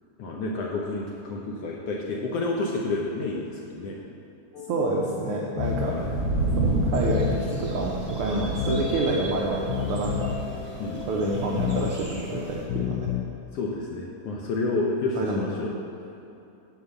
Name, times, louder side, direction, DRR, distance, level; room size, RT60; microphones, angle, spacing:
voice 1, 0.2-3.9 5.8-6.1 8.3-8.5 10.8-11.0 13.5-15.7, left 2 dB, 70° left, -2 dB, 1.5 m, -30 dB
sound 1, 4.5-13.2, left 10 dB, 90° left, 2.1 m, -32 dB
voice 2, 4.7-5.9 6.6-10.3 11.1-13.0 15.2-15.4, right 2 dB, 85° right, -2 dB, 1.2 m, -28 dB
sound 2, 5.6-12.7, right 2 dB, 45° right, 2.0 m, -31 dB
sound 3, 6.9-12.6, right 1 dB, 65° right, 0.4 m, -43 dB
9.3 x 4.8 x 7.0 m, 2.8 s
omnidirectional pair, 3.5 m